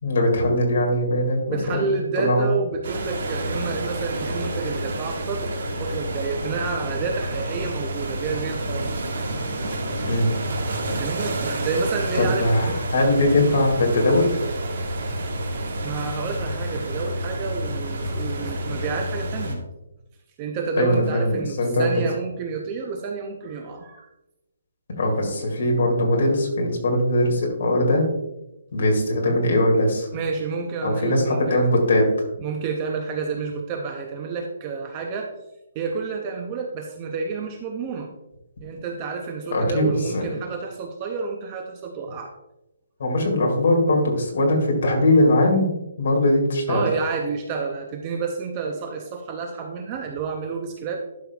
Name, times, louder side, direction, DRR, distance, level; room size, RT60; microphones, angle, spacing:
voice 1, 0.0-2.5 10.0-10.3 12.1-14.3 20.8-21.9 25.0-28.1 28.7-30.1 30.8-32.3 39.5-39.9 40.1-40.3 43.0-45.7 46.0-46.8, left 1 dB, 45° left, 0 dB, 2.1 m, -20 dB
voice 2, 1.5-8.9 10.9-12.8 15.8-19.6 20.4-24.1 30.1-31.7 32.4-35.3 35.7-38.1 38.6-42.3 46.7-51.0, right 5 dB, 15° right, 3 dB, 0.5 m, -29 dB
sound 1, 2.8-19.6, right 1 dB, 50° right, 1.5 m, -29 dB
11.5 x 6.1 x 2.3 m, 0.93 s
hypercardioid pair, 180°, 0 cm